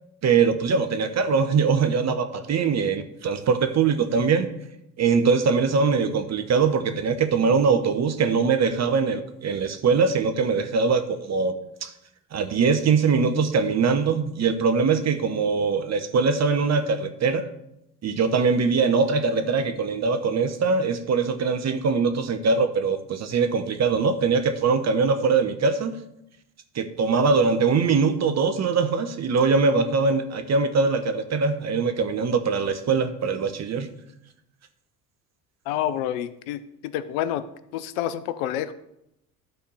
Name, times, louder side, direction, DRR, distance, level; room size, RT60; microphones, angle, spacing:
voice 1, 0.2-4.5 5.0-11.5 11.8-11.9 12.3-17.5 18.0-25.9 26.7-33.9, right 5 dB, 35° right, 9 dB, 1.0 m, -22 dB
voice 2, 35.7-37.4 37.7-38.7, left 11 dB, 65° left, 13 dB, 0.7 m, -28 dB
12.0 x 4.3 x 5.4 m, 0.82 s
hypercardioid pair, 60°, 46 cm